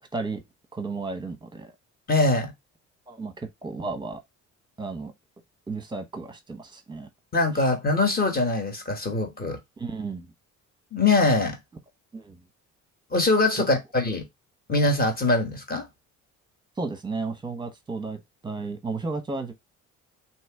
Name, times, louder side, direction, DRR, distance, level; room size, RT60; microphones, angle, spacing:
voice 1, 0.7-1.7 3.1-4.2 4.8-5.1 5.7-7.1 9.8-10.3 12.1-12.4 16.8-19.5, right 3 dB, 15° right, 0.9 m, -33 dB
voice 2, 2.1-2.5 7.3-9.6 10.9-11.6 13.1-14.3 14.7-15.8, left 2 dB, 30° left, 1.3 m, -23 dB
3.1 x 2.9 x 4.6 m
cardioid pair, 110°, 31 cm